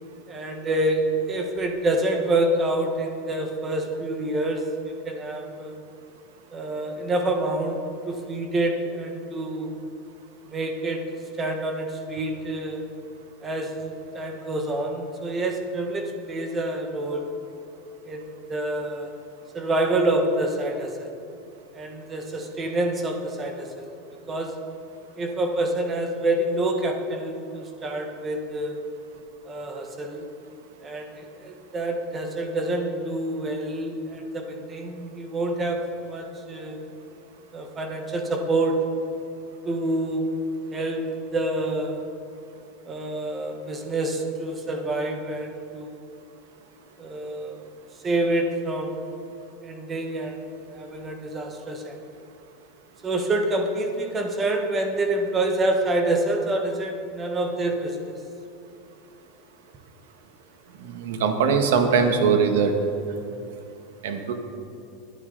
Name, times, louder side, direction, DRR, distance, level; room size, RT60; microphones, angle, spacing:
voice 1, 0.3-5.8 6.5-7.8 8.1-9.7 10.4-11.0 11.4-12.9 13.4-17.3 18.1-19.1 19.5-21.1 21.7-23.9 24.3-24.5 25.2-28.8 29.4-30.3 30.8-36.8 37.5-38.8 39.6-40.3 40.7-41.1 41.3-42.0 42.9-46.1 47.0-47.6 48.0-49.0 49.6-50.4 50.6-52.0 53.0-58.2, right 2 dB, 15° right, 3 dB, 1.2 m, -27 dB
voice 2, 60.8-62.7 64.0-64.3, right 6 dB, 80° right, 6 dB, 1.6 m, -21 dB
20.5 x 9.9 x 4.0 m, 2.7 s
supercardioid pair, 175°, 0 cm